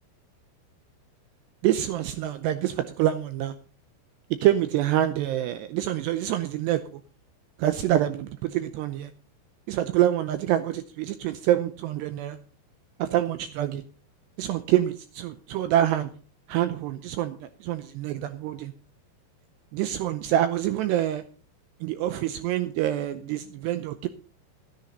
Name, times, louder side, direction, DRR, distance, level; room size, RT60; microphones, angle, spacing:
voice 1, 1.6-3.5 4.4-7.0 7.6-9.1 9.7-12.4 13.0-13.8 14.4-16.1 16.5-18.7 19.7-21.2 21.8-24.1, right 12 dB, 85° right, 11 dB, 2.5 m, -26 dB
12.5 x 10.5 x 5.3 m, 0.39 s
omnidirectional pair, 5.7 m